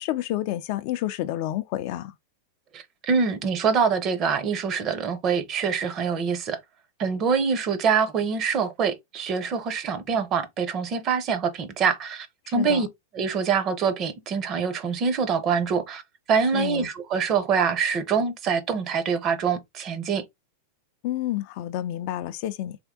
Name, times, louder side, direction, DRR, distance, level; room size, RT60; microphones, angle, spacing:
voice 1, 0.0-2.2 12.4-12.9 16.5-16.9 21.0-22.8, left 13 dB, 50° left, 0.4 m, -29 dB
voice 2, 2.7-6.6 7.0-12.9 13.1-16.0 16.3-20.2, right 6 dB, 30° right, 0.7 m, -25 dB
3.5 x 2.6 x 3.6 m
supercardioid pair, 145°, 0 cm